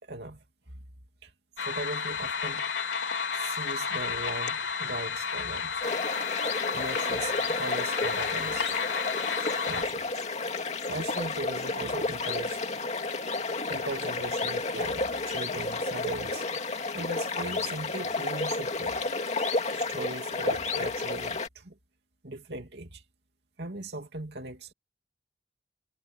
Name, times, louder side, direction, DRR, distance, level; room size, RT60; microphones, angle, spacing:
voice 1, 0.0-0.4 1.2-1.3 1.6-2.7 3.3-5.7 6.7-8.8 9.3-10.0 10.9-12.6 13.7-16.5 16.9-19.0 19.4-19.5 19.7-21.8 22.2-23.0 23.6-24.7, right 2 dB, 60° right, 2.9 m, -38 dB
sound 1, 1.6-9.8, left 5 dB, 75° left, 4.6 m, -32 dB
sound 2, 5.8-21.5, left 3 dB, 35° left, 2.4 m, -31 dB
head